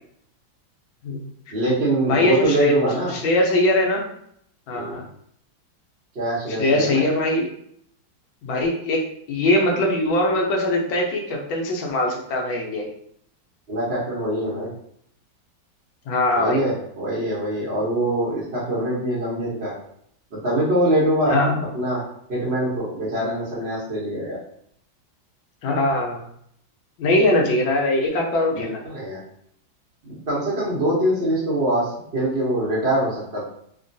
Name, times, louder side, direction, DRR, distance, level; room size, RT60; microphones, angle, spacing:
voice 1, 1.5-3.1 4.7-5.0 6.1-7.0 13.7-14.7 16.3-19.7 20.3-21.4 21.7-22.0 22.3-24.4 28.5-29.2 30.0-33.4, right 1 dB, 50° right, -7 dB, 0.8 m, -23 dB
voice 2, 2.0-2.7 3.1-4.0 4.7-5.0 6.6-7.5 8.4-12.9 16.1-16.6 21.3-21.6 25.6-26.2 27.0-28.8, left 1 dB, 75° left, 0 dB, 1.4 m, -21 dB
3.5 x 2.2 x 2.6 m, 0.68 s
omnidirectional pair, 2.2 m